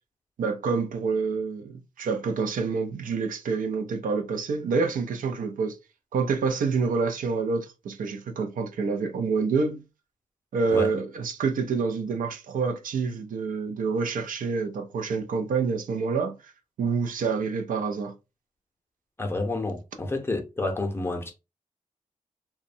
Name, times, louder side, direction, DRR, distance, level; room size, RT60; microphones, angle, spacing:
voice 1, 0.4-5.8 6.1-9.8 10.5-16.5 16.8-18.1, right 5 dB, 80° right, 0.5 m, -27 dB
voice 2, 19.2-21.3, left 2 dB, 15° left, 0.6 m, -29 dB
2.6 x 2.1 x 2.5 m
wide cardioid pair, 95°, 14 cm